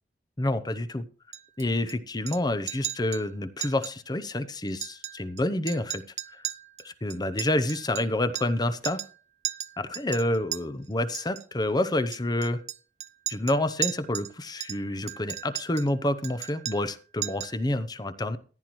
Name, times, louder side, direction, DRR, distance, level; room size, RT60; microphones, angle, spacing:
voice 1, 0.4-1.0 1.6-6.0 6.3-6.4 6.8-9.0 9.8-12.6 13.3-18.4, left 1 dB, 25° left, 12 dB, 0.7 m, -28 dB
Chink clink, 1.3-1.9 2.3-2.4 2.7-3.2 3.6-3.9 4.2-4.3 4.7-5.4 5.7-8.6 8.8-9.2 9.4-10.6 11.1-11.4 12.1-14.3 14.6-15.9 16.2-16.9 17.2-17.6, right 12 dB, 40° right, 0.5 m, -36 dB
14.5 x 10.5 x 3.1 m, 0.39 s
head